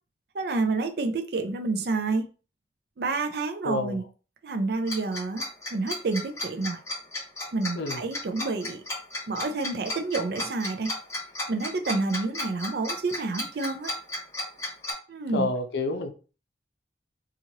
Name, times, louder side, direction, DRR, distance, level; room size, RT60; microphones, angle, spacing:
voice 1, 0.3-2.3 3.0-4.0 4.4-5.4 5.7-6.8 7.5-8.8 9.3-10.9 11.5-13.9 15.1-15.5, right 3 dB, 60° right, 0.4 m, -29 dB
voice 2, 3.6-4.0 7.8-8.1 15.3-16.1, left 2 dB, 75° left, 0.6 m, -28 dB
Tick-tock, 4.9-14.9, left 1 dB, 15° left, 1.3 m, -33 dB
2.9 x 2.4 x 2.8 m
head